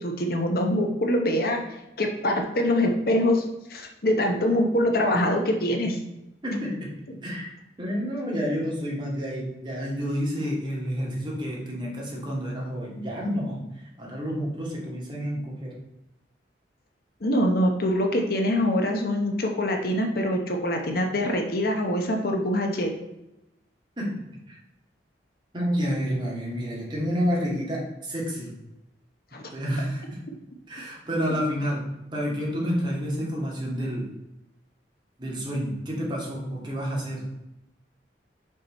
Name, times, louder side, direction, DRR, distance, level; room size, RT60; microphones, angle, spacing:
voice 1, 0.0-1.6 2.0-3.4 3.7-6.0 17.2-22.9 29.3-29.5, left 1 dB, 55° left, 3 dB, 0.9 m, -24 dB
voice 2, 6.4-6.9 7.2-7.5 7.8-13.6 14.0-15.7 24.0-24.1 24.5-24.6 25.5-28.5 29.5-30.2 30.7-31.8 32.1-34.0 35.2-37.3, equal, 25° right, -4 dB, 2.0 m, -29 dB
5.8 x 5.5 x 4.2 m, 0.91 s
head